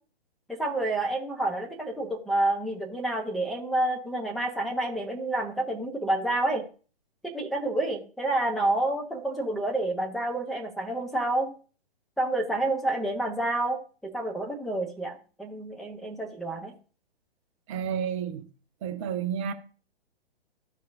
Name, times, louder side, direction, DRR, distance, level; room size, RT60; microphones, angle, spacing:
voice 1, 0.5-6.6 7.3-11.5 12.2-16.7, right 2 dB, ahead, 1.1 m, -29 dB
voice 2, 17.7-18.4 18.8-19.5, right 8 dB, 30° right, 0.9 m, -30 dB
14.0 x 4.8 x 2.7 m
figure-of-eight pair, 130°, 31 cm